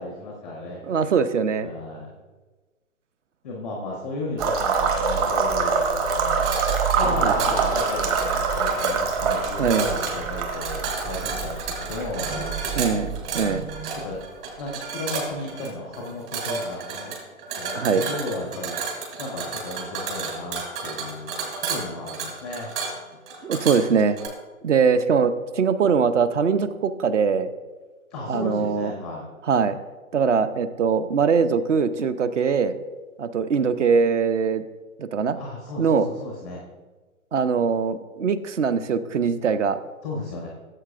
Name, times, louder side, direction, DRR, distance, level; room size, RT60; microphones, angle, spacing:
voice 1, 0.0-0.9 1.6-2.1 3.4-6.5 7.0-13.0 14.0-14.2 14.6-17.1 17.5-22.7 28.1-29.3 35.4-36.6 40.0-40.5, left 2 dB, ahead, -1 dB, 0.4 m, -34 dB
voice 2, 0.9-1.7 7.2-7.3 9.6-9.8 12.8-13.7 17.7-18.0 23.4-24.2 24.6-27.5 28.3-28.9 29.5-29.8 30.1-32.8 33.2-34.6 35.0-35.4 35.8-36.1 37.3-39.8, right 6 dB, 60° right, 13 dB, 0.7 m, -22 dB
sound 1, 4.4-14.2, right 5 dB, 25° right, 1.0 m, -25 dB
sound 2, 6.3-24.3, right 4 dB, 40° right, 3.1 m, -32 dB
sound 3, 7.0-14.1, right 1 dB, 90° right, 1.7 m, -37 dB
15.5 x 7.6 x 2.5 m, 1.3 s
figure-of-eight pair, 130°, 42 cm